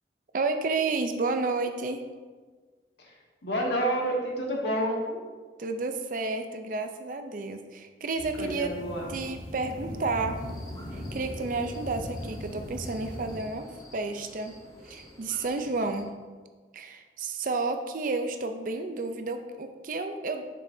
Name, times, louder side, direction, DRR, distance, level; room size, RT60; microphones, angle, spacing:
voice 1, 0.3-2.0 5.6-8.7 9.1-10.4 10.9-13.7 13.9-14.6 14.9-16.1 16.7-20.4, right 3 dB, 50° right, 7 dB, 0.5 m, -31 dB
voice 2, 3.4-5.2 8.4-9.1, right 1 dB, 75° left, -2 dB, 1.5 m, -29 dB
sound 1, 8.2-13.4, equal, 55° left, 1.6 m, -39 dB
sound 2, 10.3-16.1, left 1 dB, 20° left, 0.9 m, -49 dB
7.3 x 6.4 x 2.7 m, 1.4 s
head